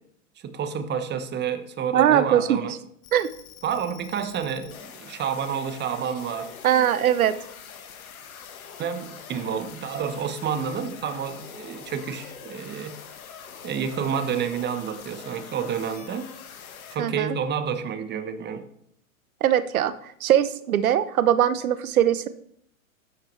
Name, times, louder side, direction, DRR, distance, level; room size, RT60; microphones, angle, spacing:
voice 1, 0.4-2.8 3.6-6.5 8.8-13.0 13.6-16.3 16.9-18.7, right 7 dB, 25° right, 9 dB, 1.2 m, -29 dB
voice 2, 1.9-2.6 3.1-3.3 6.6-7.3 17.0-17.4 19.4-22.3, right 10 dB, 80° right, 14 dB, 0.9 m, -21 dB
sound 1, 3.0-17.0, left 7 dB, 80° left, 1.5 m, -44 dB
12.5 x 9.5 x 3.2 m, 0.70 s
hypercardioid pair, 110°, 42 cm